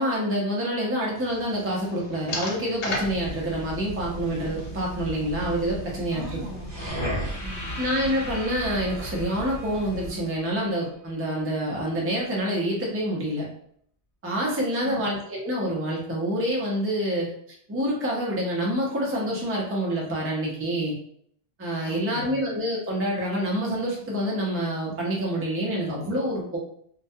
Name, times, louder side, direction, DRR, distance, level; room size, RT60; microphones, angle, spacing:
voice 1, 0.0-6.4 7.8-13.5 14.2-17.3 17.7-20.9 21.6-26.6, equal, 20° right, -3 dB, 0.4 m, -27 dB
sound 1, 1.1-6.9, left 2 dB, 85° left, 0.9 m, -38 dB
sound 2, 2.9-10.2, right 1 dB, 50° right, 0.8 m, -36 dB
voice 2, 6.1-7.8 14.8-15.1 21.8-22.4, right 1 dB, 90° right, 0 dB, 1.0 m, -39 dB
sound 3, 7.0-11.1, left 1 dB, 10° left, 1.0 m, -41 dB
2.3 x 2.1 x 2.6 m, 0.64 s
omnidirectional pair, 1.1 m